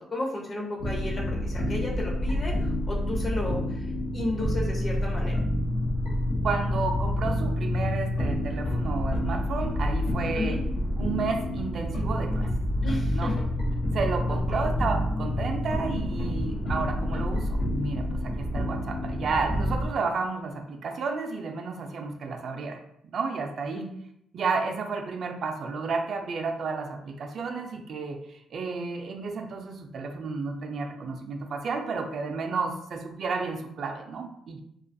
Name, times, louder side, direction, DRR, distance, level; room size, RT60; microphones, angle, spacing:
voice 1, 0.1-3.8 4.1-5.3 10.3-10.6 12.8-13.3 14.5-14.7 23.7-24.0, left 1 dB, 40° left, -1 dB, 0.7 m, -33 dB
sound 1, 0.8-19.9, left 1 dB, 85° left, 0.7 m, -28 dB
voice 2, 6.4-10.6 11.0-12.5 13.1-13.3 13.9-22.8 23.1-23.9 24.3-34.6, right 4 dB, 60° right, 4 dB, 0.3 m, -32 dB
2.4 x 2.3 x 2.5 m, 0.74 s
cardioid pair, 90°, 0 cm